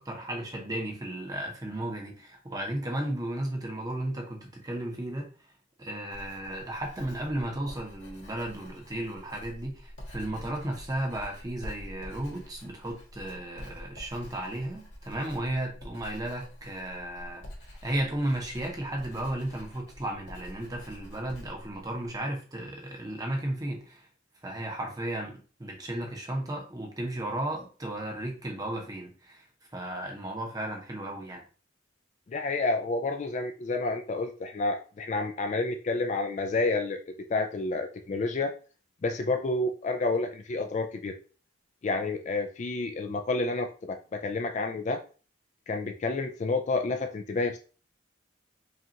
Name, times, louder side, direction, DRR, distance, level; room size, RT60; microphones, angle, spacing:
voice 1, 0.0-5.3 5.8-17.5 17.8-24.1 24.4-29.4 29.7-31.4, right 1 dB, 20° right, 0.8 m, -34 dB
Writing, 6.1-22.2, equal, 60° left, 1.5 m, -47 dB
voice 2, 32.3-37.0 37.3-38.5 39.0-41.2 41.8-45.0 45.7-47.6, left 3 dB, 35° left, 0.3 m, -29 dB
5.0 x 2.4 x 2.9 m
head